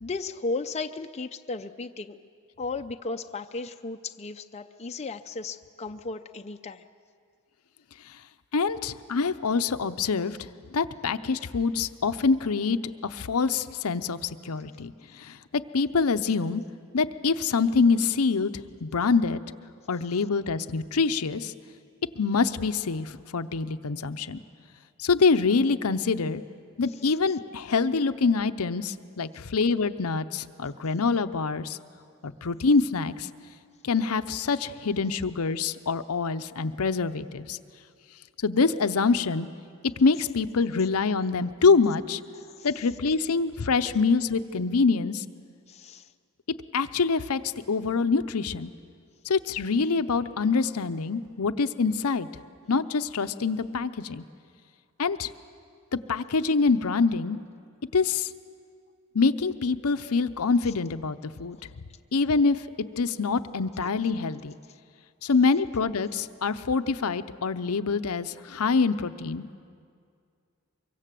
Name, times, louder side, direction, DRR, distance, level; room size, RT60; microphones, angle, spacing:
voice 1, 0.0-2.2 2.6-6.8 26.9-27.2 29.3-29.4 42.3-42.9 45.7-46.1, left 3 dB, 30° left, 6 dB, 0.6 m, -35 dB
voice 2, 8.5-10.4 10.7-16.6 16.9-19.4 19.9-21.5 22.2-24.4 25.0-26.4 26.8-31.8 32.2-33.3 33.8-37.6 38.4-39.5 40.0-42.2 42.6-45.2 46.7-47.4 47.7-48.7 49.2-52.3 52.7-54.2 55.0-55.3 56.1-57.4 57.9-58.3 59.1-61.6 62.1-62.6 63.0-64.6 65.2-69.5, left 4 dB, 70° left, 10 dB, 0.7 m, -25 dB
24.0 x 23.5 x 7.6 m, 2.2 s
head